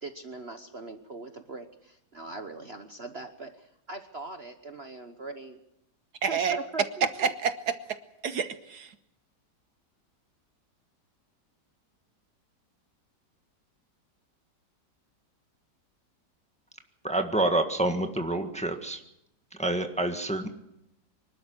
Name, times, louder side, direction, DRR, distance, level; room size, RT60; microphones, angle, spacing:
voice 1, 0.0-5.6 6.3-7.1, right 3 dB, 40° right, 7 dB, 1.2 m, -41 dB
voice 2, 6.2-6.6 7.0-8.0 8.2-8.9, right 6 dB, 70° right, 11 dB, 1.5 m, -28 dB
voice 3, 17.0-19.0 19.6-20.5, right 2 dB, 5° left, 5 dB, 1.4 m, -27 dB
24.5 x 12.5 x 10.0 m, 0.84 s
omnidirectional pair, 1.9 m